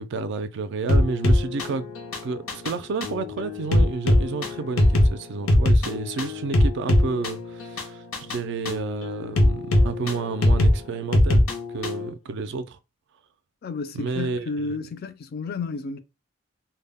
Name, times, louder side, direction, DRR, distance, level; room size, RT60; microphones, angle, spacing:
voice 1, 0.0-1.8 2.2-12.8 13.9-14.8, right 4 dB, 60° right, 0.3 m, -31 dB
sound 1, 0.9-12.1, left 1 dB, 90° left, 0.6 m, -22 dB
voice 2, 13.6-16.0, left 4 dB, 50° left, 0.3 m, -31 dB
2.1 x 2.0 x 3.4 m
head